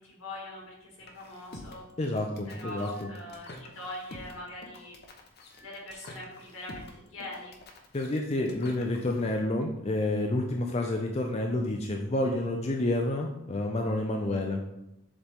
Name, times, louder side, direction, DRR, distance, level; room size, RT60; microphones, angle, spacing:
voice 1, 0.0-1.9 2.5-5.0 5.6-7.6, left 1 dB, 75° left, -2 dB, 2.0 m, -42 dB
sound 1, 1.0-9.2, left 2 dB, 50° left, 0.8 m, -48 dB
voice 2, 2.0-3.1 7.9-14.6, left 1 dB, 30° left, 1 dB, 0.5 m, -29 dB
7.1 x 3.9 x 3.5 m, 0.86 s
head